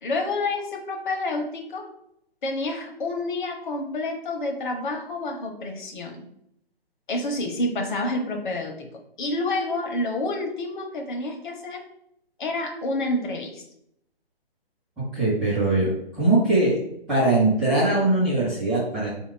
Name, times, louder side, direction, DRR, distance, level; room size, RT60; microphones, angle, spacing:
voice 1, 0.0-1.8 2.4-6.2 7.1-8.7 9.2-11.8 12.4-13.6, left 2 dB, 50° left, 2 dB, 1.0 m, -28 dB
voice 2, 15.1-16.8 17.1-19.1, right 2 dB, ahead, -10 dB, 0.3 m, -21 dB
3.8 x 2.8 x 4.3 m, 0.75 s
hypercardioid pair, 155°, 31 cm